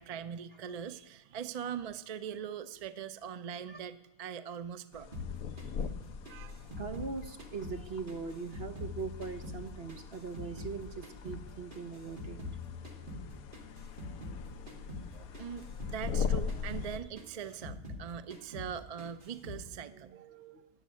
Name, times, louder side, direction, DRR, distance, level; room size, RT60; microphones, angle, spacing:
voice 1, 0.0-5.1 6.3-6.7 15.1-20.3, right 8 dB, 85° right, 12 dB, 0.3 m, -42 dB
sound 1, 4.9-17.0, left 6 dB, 75° left, 1.2 m, -41 dB
sound 2, 5.1-7.8 8.1-10.8 11.0-14.4 14.7-15.1 15.3-18.0 18.3-18.7 19.0-19.6, left 3 dB, 35° right, 2.1 m, -44 dB
voice 2, 6.8-12.4 19.9-20.7, right 5 dB, 50° right, 8 dB, 0.9 m, -41 dB
16.0 x 7.3 x 9.7 m, 0.94 s
omnidirectional pair, 1.6 m